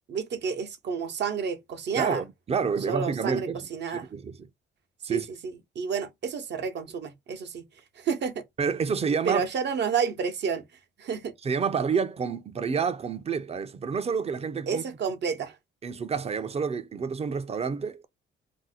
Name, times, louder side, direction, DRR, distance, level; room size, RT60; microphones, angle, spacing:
voice 1, 0.1-2.2 2.9-4.1 5.1-7.6 8.0-8.4 9.3-10.6 11.0-11.3 14.7-15.6, right 6 dB, 60° right, 0.9 m, -30 dB
voice 2, 1.9-3.7 4.1-4.5 5.0-5.3 8.6-9.4 11.4-14.8 15.8-18.1, right 6 dB, 30° right, 0.6 m, -28 dB
2.7 x 2.1 x 4.0 m
cardioid pair, 90°, 20 cm